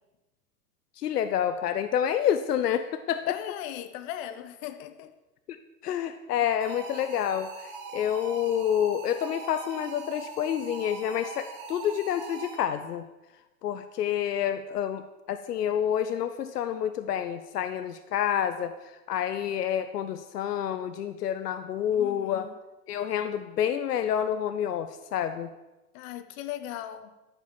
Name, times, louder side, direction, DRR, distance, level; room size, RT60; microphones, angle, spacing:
voice 1, 1.0-3.4 5.8-13.1 13.6-15.0 15.3-18.7 19.1-22.5 22.9-25.5, left 9 dB, 85° left, 0.9 m, -28 dB
voice 2, 3.2-5.1 21.9-22.5 25.9-27.1, left 12 dB, 60° left, 1.4 m, -38 dB
sound 1, 6.6-12.9, right 5 dB, 55° right, 3.2 m, -42 dB
13.5 x 8.2 x 7.2 m
hypercardioid pair, 105°, 46 cm